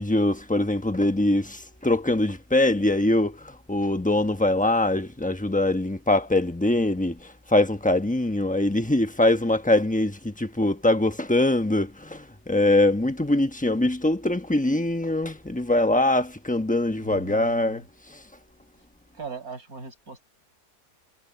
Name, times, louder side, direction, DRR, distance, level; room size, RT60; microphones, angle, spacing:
voice 1, 0.0-18.2, left 1 dB, 5° left, 0.8 m, -23 dB
voice 2, 17.0-17.8 19.1-20.2, right 4 dB, 65° right, 7.2 m, -39 dB
omnidirectional pair, 1.7 m